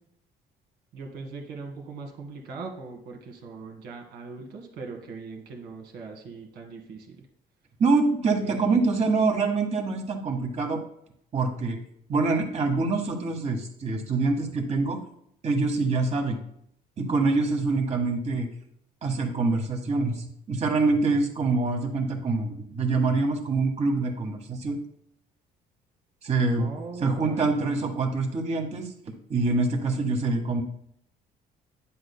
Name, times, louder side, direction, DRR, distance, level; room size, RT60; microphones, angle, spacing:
voice 1, 0.9-7.3 8.4-8.8 26.6-27.6, right 4 dB, 85° right, 2 dB, 1.9 m, -40 dB
voice 2, 7.8-10.8 11.3-11.8 12.1-15.0 15.4-16.4 17.0-18.5 19.0-24.8 26.2-26.7 27.0-28.9 29.3-30.6, right 3 dB, 40° right, 3 dB, 1.6 m, -25 dB
9.9 x 7.7 x 2.2 m, 0.70 s
cardioid pair, 110°, 17 cm